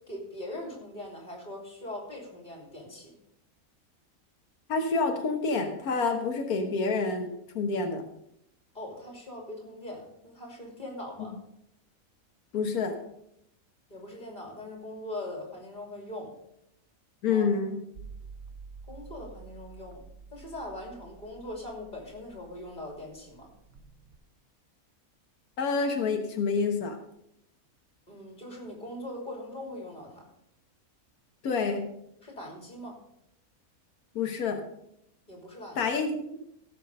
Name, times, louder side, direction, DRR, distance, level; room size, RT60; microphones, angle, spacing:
voice 1, 0.1-3.1 8.7-11.4 13.9-16.4 17.3-17.6 18.9-20.0 20.3-23.5 28.1-30.3 32.2-33.0 35.3-35.9, left 1 dB, 30° left, 0 dB, 3.1 m, -41 dB
voice 2, 4.7-8.1 12.5-13.0 17.2-17.8 25.6-27.0 31.4-31.9 34.1-34.6 35.8-36.1, left 4 dB, 90° left, 4 dB, 1.6 m, -28 dB
sound 1, 18.0-24.2, right 5 dB, 75° right, 1.5 m, -49 dB
15.5 x 6.4 x 5.3 m, 0.78 s
omnidirectional pair, 1.5 m